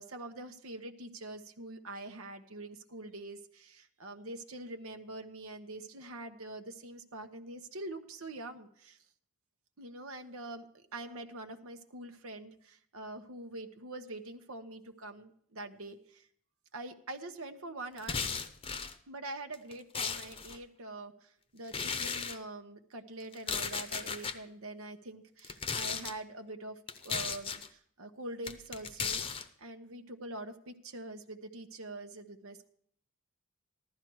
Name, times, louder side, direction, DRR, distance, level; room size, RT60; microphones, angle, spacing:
voice 1, 0.0-9.0 9.8-16.2 16.7-18.2 19.1-32.7, right 2 dB, 85° right, 6 dB, 1.1 m, -44 dB
sound 1, 18.0-18.9 19.5-20.6 21.7-22.4 23.3-24.4 25.4-26.1 26.9-27.7 28.4-29.4, left 5 dB, 25° left, 0.7 m, -36 dB
15.0 x 12.5 x 4.7 m, 0.65 s
head